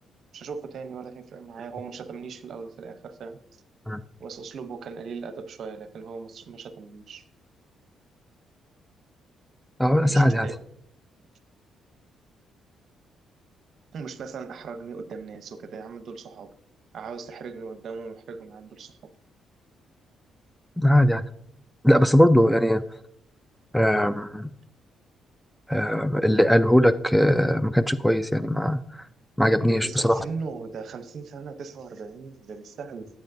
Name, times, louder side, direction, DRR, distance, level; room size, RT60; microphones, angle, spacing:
voice 1, 0.3-3.4 4.2-7.2 10.0-10.5 13.9-16.5 16.9-19.1 29.6-33.1, right 5 dB, 60° right, 12 dB, 0.7 m, -38 dB
voice 2, 9.8-10.5 20.8-21.2 21.8-22.8 23.7-24.5 25.7-28.8 29.4-30.2, equal, ahead, 14 dB, 0.4 m, -20 dB
11.5 x 8.0 x 2.6 m, 0.72 s
cardioid pair, 90°, 0 cm